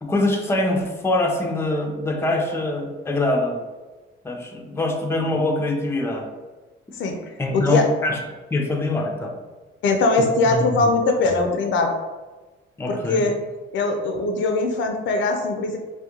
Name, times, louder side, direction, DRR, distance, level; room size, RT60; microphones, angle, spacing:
voice 1, 0.0-3.6 4.2-6.3 7.4-8.2 8.5-9.3 10.2-10.9 12.8-13.3, left 2 dB, 10° left, 1 dB, 0.4 m, -24 dB
voice 2, 7.5-7.9 9.8-11.9 12.9-13.4 13.7-15.8, left 3 dB, 70° left, 4 dB, 0.4 m, -21 dB
2.3 x 2.1 x 2.8 m, 1.2 s
cardioid pair, 90°, 20 cm